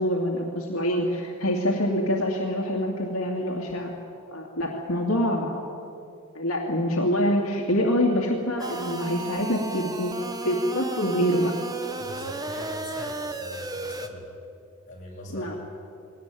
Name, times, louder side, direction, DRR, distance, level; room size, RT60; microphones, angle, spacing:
voice 1, 0.0-3.9 4.3-5.6 6.3-10.1 10.4-11.5 15.3-15.5, equal, 75° left, 0 dB, 2.4 m, -25 dB
sound 1, 8.6-14.1, right 2 dB, 15° right, 1.2 m, -34 dB
voice 2, 12.0-14.3 14.9-15.6, left 1 dB, 35° left, -4 dB, 6.9 m, -41 dB
21.0 x 18.5 x 9.2 m, 2.6 s
head